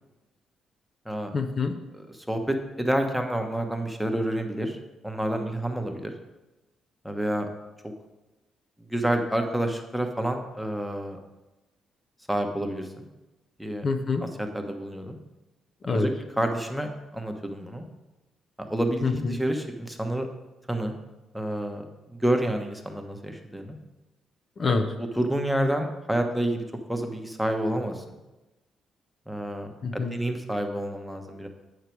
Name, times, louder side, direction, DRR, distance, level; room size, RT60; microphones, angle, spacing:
voice 1, 1.3-1.7 13.8-14.2 15.8-16.1 19.0-19.4 24.6-24.9 29.8-30.1, left 4 dB, 45° left, 7 dB, 0.7 m, -26 dB
voice 2, 1.9-4.8 5.0-6.1 7.0-7.5 8.9-11.2 12.3-13.0 13.6-13.8 14.2-15.2 15.9-17.8 18.6-20.3 20.7-20.9 21.3-23.8 25.0-26.6 26.9-28.2 29.3-31.5, right 1 dB, ahead, 4 dB, 1.1 m, -29 dB
8.3 x 6.6 x 4.6 m, 1.1 s
cardioid pair, 90°, 0 cm